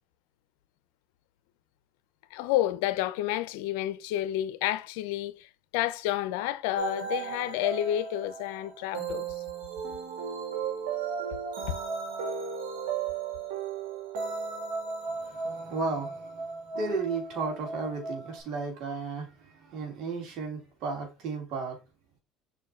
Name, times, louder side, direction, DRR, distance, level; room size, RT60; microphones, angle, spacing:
voice 1, 2.3-9.3 11.7-11.8, left 13 dB, 85° left, 0.7 m, -30 dB
sound 1, 6.8-18.4, right 5 dB, 90° right, 2.2 m, -35 dB
voice 2, 15.2-16.5 16.7-21.8, right 4 dB, 65° right, 2.9 m, -34 dB
5.5 x 4.6 x 4.4 m
supercardioid pair, 95°, 0 cm